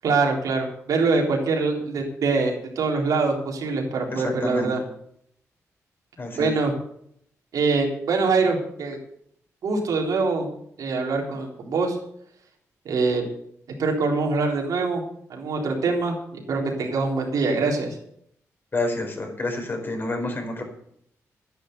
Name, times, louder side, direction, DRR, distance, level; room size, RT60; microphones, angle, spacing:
voice 1, 0.0-4.8 6.3-6.7 7.5-9.0 9.6-10.5 10.8-12.0 12.9-13.2 13.8-15.0 15.3-18.0, right 4 dB, 80° right, 0 dB, 3.8 m, -24 dB
voice 2, 4.1-4.7 6.2-6.5 18.7-20.6, left 2 dB, 40° left, 3 dB, 4.9 m, -28 dB
12.0 x 9.9 x 8.2 m, 0.69 s
cardioid pair, 75°, 6 cm